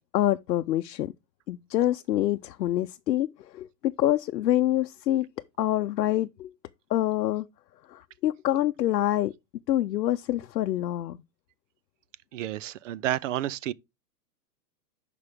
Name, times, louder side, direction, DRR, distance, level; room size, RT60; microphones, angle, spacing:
voice 1, 0.1-1.1 1.5-5.3 5.6-6.5 6.9-7.5 7.9-9.3 9.7-11.2, left 13 dB, 90° left, 0.7 m, -26 dB
voice 2, 12.3-13.7, right 12 dB, 50° right, 0.5 m, -30 dB
10.5 x 5.1 x 3.5 m
hypercardioid pair, 140°, 48 cm